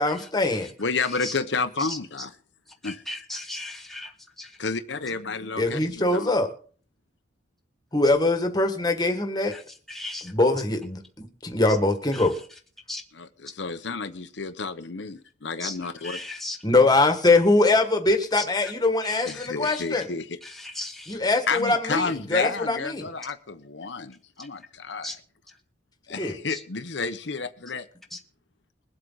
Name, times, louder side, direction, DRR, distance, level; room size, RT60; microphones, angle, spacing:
voice 1, 0.0-0.7 5.6-6.5 7.9-9.5 10.2-12.4 16.6-20.1 21.1-23.1 26.2-26.4, left 2 dB, 20° left, 6 dB, 1.6 m, -22 dB
voice 2, 0.8-2.4 2.8-3.3 4.6-6.3 13.1-16.2 19.2-20.4 21.5-25.2 26.1-27.8, left 4 dB, 70° left, 8 dB, 0.9 m, -31 dB
voice 3, 2.8-4.1 4.4-4.5 9.9-10.3 12.1-12.2 12.9-13.0 15.6-15.8 16.0-16.6 18.4-18.5 19.0-19.2 19.7-19.8 20.4-21.2 25.0-25.1 26.5-26.6, left 1 dB, ahead, 1 dB, 1.2 m, -36 dB
22.0 x 7.9 x 4.0 m, 0.42 s
head